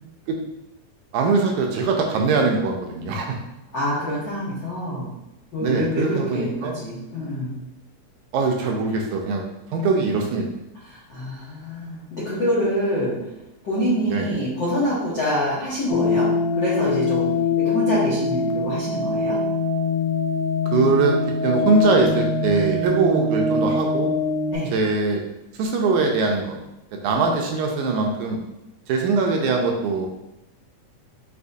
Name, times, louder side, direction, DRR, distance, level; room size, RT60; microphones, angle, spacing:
voice 1, 1.1-3.4 5.6-6.8 8.3-9.4 9.7-10.5 14.1-14.3 20.7-21.2 21.4-24.1 24.7-25.2 25.5-26.6 26.9-28.4 28.9-30.1, right 4 dB, 80° right, 2 dB, 1.9 m, -22 dB
voice 2, 3.7-5.1 5.5-7.5 10.8-13.2 13.6-19.4 24.5-24.7, equal, 70° left, -8 dB, 1.0 m, -26 dB
sound 1, 15.9-24.6, left 3 dB, 90° left, 2.2 m, -23 dB
6.4 x 2.8 x 2.6 m, 0.89 s
omnidirectional pair, 3.6 m